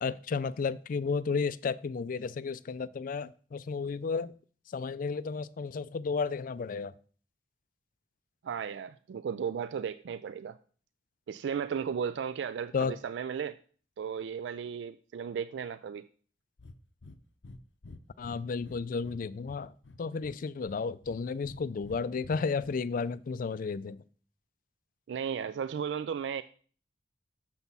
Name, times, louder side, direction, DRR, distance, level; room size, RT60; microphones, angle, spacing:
voice 1, 0.0-4.3 4.7-6.9 12.7-12.9 18.2-19.7 20.0-24.0, left 5 dB, 50° left, 0.4 m, -33 dB
voice 2, 8.4-10.6 11.3-13.6 14.0-16.0 25.1-26.4, right 7 dB, 75° right, 0.3 m, -35 dB
Breathing, 16.6-16.8 17.0-17.2 17.4-17.6 17.8-19.2 19.4-20.4 20.7-21.6 21.8-22.7, left 2 dB, 80° left, 0.6 m, -48 dB
7.0 x 6.0 x 5.4 m
head